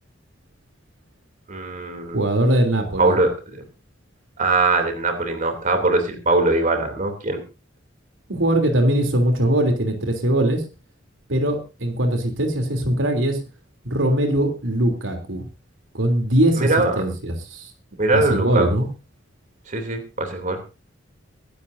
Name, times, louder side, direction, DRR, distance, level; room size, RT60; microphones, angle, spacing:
voice 1, 1.5-2.2 3.0-3.3 4.4-7.4 16.6-16.9 18.0-18.7 19.7-20.6, right 2 dB, 45° right, 5 dB, 3.1 m, -21 dB
voice 2, 2.1-3.2 8.3-10.6 11.3-13.4 13.8-15.5 15.9-17.7 18.1-18.8, right 1 dB, 85° right, 5 dB, 3.3 m, -21 dB
24.0 x 12.0 x 2.7 m, 0.31 s
head